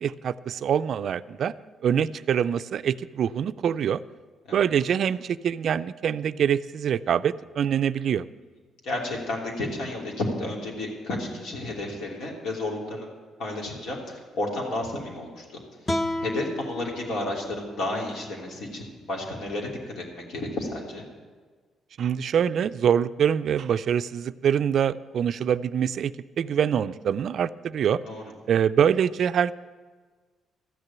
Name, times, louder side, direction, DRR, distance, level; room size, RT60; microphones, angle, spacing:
voice 1, 0.0-1.5 1.8-4.0 4.5-8.2 22.0-28.0 28.5-29.5, right 8 dB, 60° right, 14 dB, 0.4 m, -24 dB
voice 2, 8.8-13.1 13.4-15.6 16.2-21.1 28.0-28.2, left 2 dB, 75° left, -1 dB, 3.0 m, -32 dB
sound 1, 15.9-19.0, left 1 dB, 25° left, 0.9 m, -33 dB
13.5 x 6.7 x 8.7 m, 1.5 s
cardioid pair, 85°, 0 cm